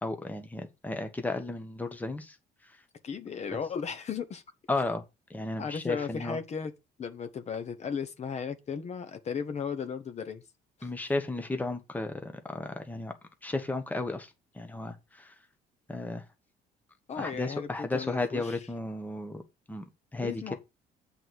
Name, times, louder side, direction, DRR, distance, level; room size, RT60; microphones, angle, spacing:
voice 1, 0.0-2.4 3.5-3.6 4.7-5.0 5.3-6.4 10.8-13.1 13.4-15.3 15.9-16.2 17.2-19.4 19.7-19.8 20.1-20.5, left 2 dB, 10° left, 1.2 m, -34 dB
voice 2, 3.0-4.4 5.6-6.7 7.0-10.4 10.8-10.9 17.1-18.6 20.2-20.5, left 6 dB, 40° left, 1.1 m, -35 dB
7.7 x 4.1 x 6.3 m
cardioid pair, 110°, 17 cm